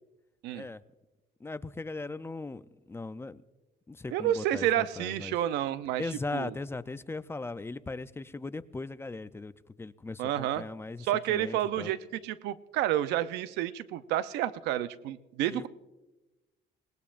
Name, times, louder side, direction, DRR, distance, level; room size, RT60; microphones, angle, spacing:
voice 1, 1.4-2.6 2.9-3.4 3.9-5.3 6.0-9.5 9.8-11.9 15.5-15.7, left 3 dB, 15° left, 0.5 m, -38 dB
voice 2, 4.1-6.5 10.2-10.7 11.0-15.7, right 12 dB, 90° right, 0.6 m, -30 dB
25.5 x 19.5 x 2.5 m
cardioid pair, 110°, 17 cm